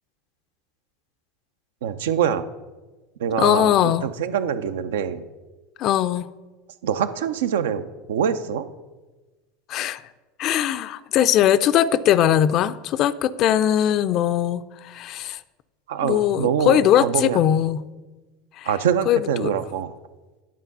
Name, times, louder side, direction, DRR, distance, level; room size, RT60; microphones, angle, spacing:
voice 1, 1.8-2.4 3.2-5.2 6.8-8.7 15.9-17.4 18.7-19.9, right 8 dB, 75° right, 12 dB, 0.4 m, -24 dB
voice 2, 3.4-4.1 5.8-6.3 9.7-10.0 10.4-15.4 16.0-17.8 18.6-18.7 19.1-19.5, left 10 dB, 50° left, 14 dB, 0.4 m, -20 dB
10.5 x 3.7 x 5.3 m, 1.2 s
hypercardioid pair, 80°, 0 cm